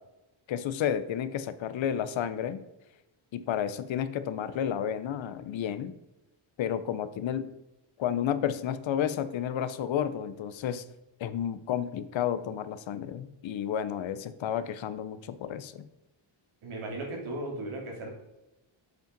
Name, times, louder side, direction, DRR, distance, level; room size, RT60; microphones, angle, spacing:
voice 1, 0.5-2.6 3.3-5.9 6.6-7.5 8.0-10.8 11.2-15.8, left 9 dB, 70° left, 13 dB, 0.7 m, -31 dB
voice 2, 16.6-18.1, right 2 dB, 80° right, -1 dB, 2.9 m, -36 dB
7.8 x 5.4 x 5.2 m, 0.96 s
wide cardioid pair, 160°, 48 cm